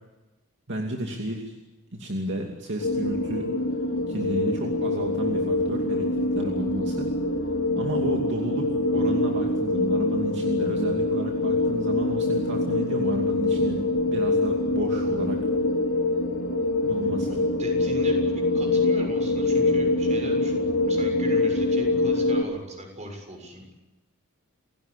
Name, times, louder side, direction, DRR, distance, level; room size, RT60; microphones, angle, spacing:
voice 1, 0.7-1.6 1.9-3.5 4.1-7.1 7.8-15.4 16.8-17.3, right 1 dB, 55° right, 1 dB, 2.7 m, -32 dB
sound 1, 2.8-22.4, left 2 dB, 70° left, 4.8 m, -24 dB
voice 2, 17.3-23.8, equal, 30° right, 3 dB, 6.9 m, -39 dB
29.0 x 17.5 x 8.4 m, 1.1 s
head